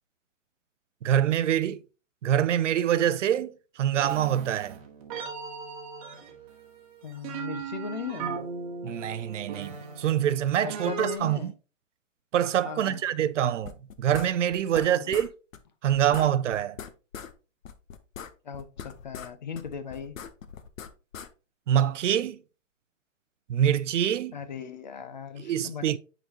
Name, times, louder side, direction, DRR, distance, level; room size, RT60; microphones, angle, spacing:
voice 1, 1.0-1.8 2.2-4.8 8.8-11.5 12.3-15.3 15.8-16.8 21.7-22.4 23.5-24.4 25.4-26.0, right 10 dB, 65° right, 0.5 m, -25 dB
sound 1, 4.0-11.2, right 6 dB, 25° right, 1.2 m, -38 dB
voice 2, 7.0-8.4 10.6-11.5 12.6-13.0 14.7-15.1 18.4-20.2 24.3-26.0, left 7 dB, 35° left, 0.5 m, -38 dB
sound 2, 13.6-14.9 15.1-15.3 15.5-15.6 15.9-17.3 17.6-19.3 19.5-21.3, left 7 dB, 75° left, 0.9 m, -41 dB
9.0 x 4.0 x 2.8 m
hypercardioid pair, 160°, 40 cm